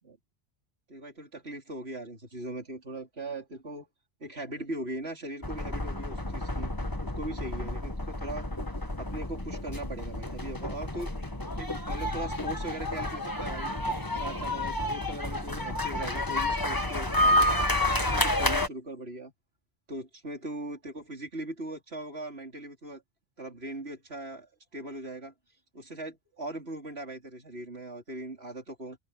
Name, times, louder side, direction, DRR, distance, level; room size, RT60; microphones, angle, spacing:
voice 1, 0.9-3.9 4.2-6.7 7.0-8.5 9.0-11.1 11.6-13.7 14.1-17.5 18.0-19.3 19.9-23.0 23.4-25.3 25.7-29.0, right 1 dB, 70° right, 4.7 m, -39 dB
sound 1, 5.4-18.7, left 1 dB, 20° left, 1.8 m, -30 dB
omnidirectional pair, 1.1 m